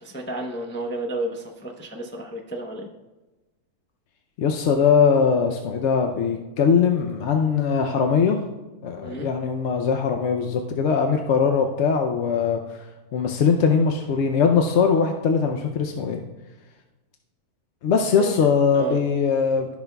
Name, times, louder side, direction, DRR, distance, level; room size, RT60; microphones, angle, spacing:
voice 1, 0.0-2.9 9.0-9.3 18.2-18.5 18.8-19.0, right 1 dB, 15° left, 0 dB, 0.4 m, -32 dB
voice 2, 4.4-8.4 8.8-12.9 13.1-16.2 17.8-19.7, left 6 dB, 65° left, 4 dB, 0.8 m, -21 dB
14.5 x 5.9 x 2.3 m, 1.1 s
omnidirectional pair, 1.6 m